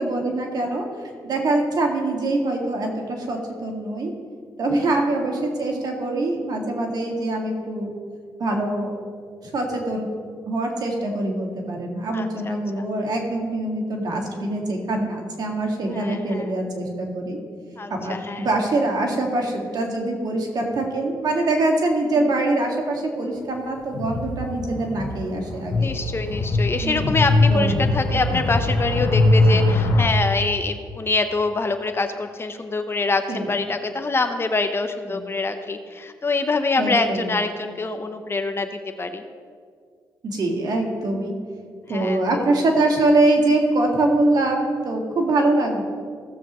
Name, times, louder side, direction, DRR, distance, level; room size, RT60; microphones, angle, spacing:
voice 1, 0.0-4.1 4.6-7.9 8.4-9.0 9.5-10.1 10.5-17.4 17.9-25.9 26.8-27.2 27.5-27.7 33.3-33.5 35.1-35.2 36.8-37.3 40.2-41.3 41.9-45.8, right 2 dB, 60° right, 1 dB, 1.9 m, -24 dB
voice 2, 12.1-12.8 15.9-16.6 17.8-18.5 25.8-38.7 39.0-39.2 41.9-42.5, left 3 dB, 30° left, 8 dB, 0.7 m, -25 dB
sound 1, 23.9-30.1, left 2 dB, 65° left, 1.2 m, -21 dB
16.0 x 7.3 x 3.0 m, 2.1 s
cardioid pair, 80°, 8 cm